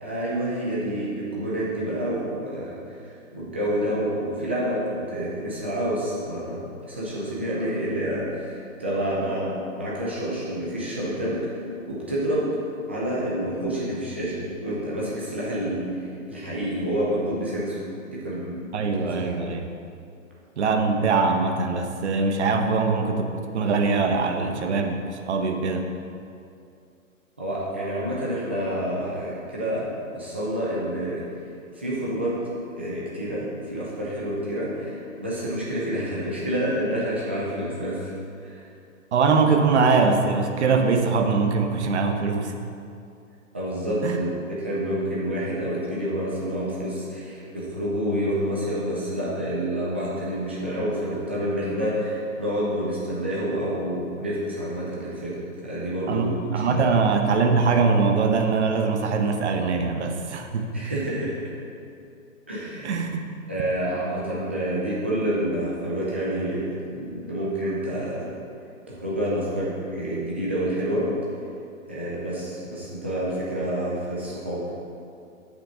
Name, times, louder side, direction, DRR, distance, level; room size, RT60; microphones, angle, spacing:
voice 1, 0.0-12.6 12.9-17.8 18.1-18.9 19.2-19.4 27.4-29.9 30.1-31.2 31.7-32.4 32.8-38.1 38.4-38.6 43.5-57.0 60.7-61.4 62.5-62.9 63.5-68.3 68.9-71.1 71.9-74.6, right 1 dB, 10° right, -6 dB, 0.4 m, -28 dB
voice 2, 18.7-19.7 20.6-25.0 25.3-25.9 39.1-42.5 44.0-44.2 56.1-60.7 62.8-63.2, right 4 dB, 55° right, 5 dB, 1.0 m, -22 dB
8.7 x 5.3 x 6.8 m, 2.5 s
hypercardioid pair, 155°, 41 cm